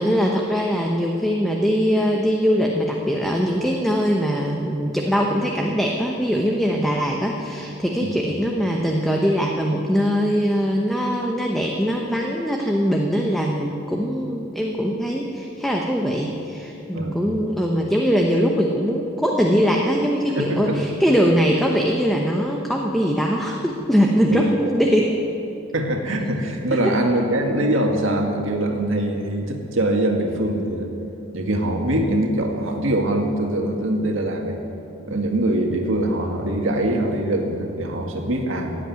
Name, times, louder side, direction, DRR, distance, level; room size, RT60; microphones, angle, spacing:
voice 1, 0.0-25.1 26.8-27.0, equal, ahead, 0 dB, 0.9 m, -21 dB
voice 2, 20.3-20.8 24.3-24.7 25.7-30.9 31.3-34.6 35.1-38.7, right 1 dB, 75° right, 2 dB, 2.0 m, -23 dB
16.5 x 8.4 x 9.6 m, 2.9 s
head